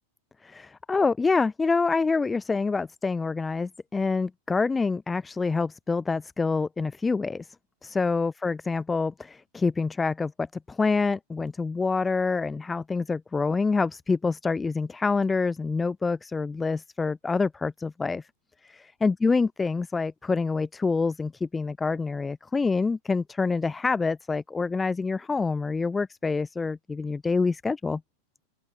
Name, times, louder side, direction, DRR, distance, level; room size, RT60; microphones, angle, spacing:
voice 1, 0.4-7.5 7.8-18.3 18.6-28.0, left 4 dB, 10° left, 2.6 m, -26 dB
open air
figure-of-eight pair, 90°, 0 cm